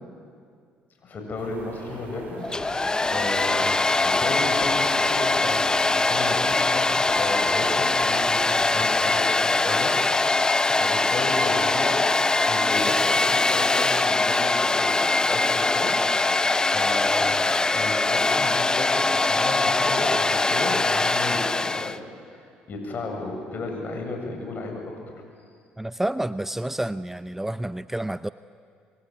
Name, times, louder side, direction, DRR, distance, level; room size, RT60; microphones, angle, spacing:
voice 1, 1.0-2.8 3.1-3.7 4.0-12.1 12.5-17.5 17.7-25.0, left 3 dB, 50° left, 3 dB, 7.7 m, -34 dB
sound 1, 1.4-9.2, right 5 dB, 60° right, 4.6 m, -42 dB
Domestic sounds home sounds, 2.4-22.0, left 3 dB, 20° left, 0.9 m, -22 dB
voice 2, 25.8-28.3, right 1 dB, 10° right, 14 dB, 0.6 m, -29 dB
26.5 x 22.5 x 9.3 m, 2.2 s
supercardioid pair, 65°, 4 cm